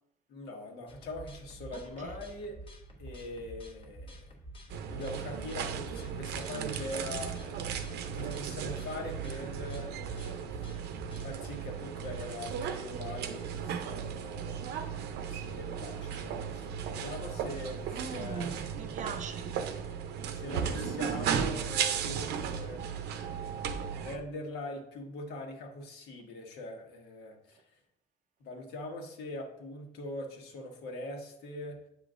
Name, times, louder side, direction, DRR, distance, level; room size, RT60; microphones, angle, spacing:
voice 1, 0.3-2.6 3.0-4.3 4.9-10.7 11.2-14.8 15.1-18.5 20.3-22.9 24.0-27.6 28.4-31.8, left 1 dB, 80° left, 1.5 m, -42 dB
sound 1, 0.9-11.5, right 1 dB, 30° left, 1.0 m, -49 dB
voice 2, 1.7-2.1 17.9-19.5, right 5 dB, 45° right, 0.7 m, -41 dB
sound 2, 4.7-24.2, right 7 dB, 80° right, 0.7 m, -36 dB
8.6 x 5.0 x 2.5 m
cardioid pair, 110°, 17 cm